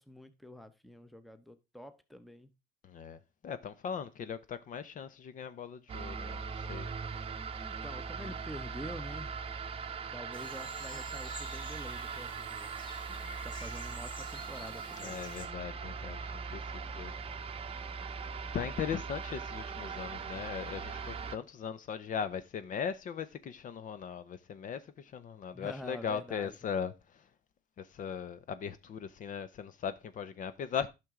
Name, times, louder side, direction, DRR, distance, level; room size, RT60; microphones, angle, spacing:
voice 1, 0.0-2.5 7.6-9.3 10.1-12.7 13.4-15.2 25.5-26.7, equal, ahead, 0.8 m, -47 dB
voice 2, 2.8-6.9 13.1-13.4 15.0-17.1 18.5-27.2 27.8-30.9, left 7 dB, 50° left, 0.7 m, -39 dB
sound 1, 5.9-21.4, right 5 dB, 35° right, 0.7 m, -40 dB
sound 2, 10.3-15.5, left 1 dB, 30° left, 2.7 m, -50 dB
11.0 x 6.0 x 3.7 m
cardioid pair, 110°, 17 cm